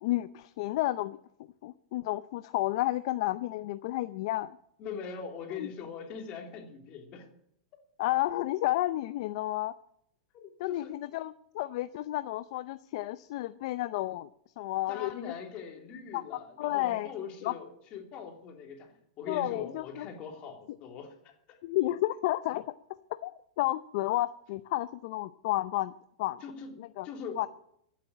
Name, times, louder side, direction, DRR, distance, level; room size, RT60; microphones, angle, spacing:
voice 1, 0.0-1.2 1.6-4.6 5.6-5.7 8.0-9.7 10.6-14.3 14.6-15.3 16.1-17.1 17.4-17.5 19.3-20.1 21.6-22.7 23.2-25.9 26.2-26.4 26.8-27.1 27.4-27.5, left 16 dB, 55° left, 13 dB, 0.6 m, -31 dB
voice 2, 4.8-7.3 10.3-10.9 14.9-21.6 26.4-26.7 27.0-27.4, left 6 dB, 35° left, 3 dB, 3.2 m, -42 dB
15.0 x 8.3 x 9.8 m, 0.71 s
supercardioid pair, 145°, 3 cm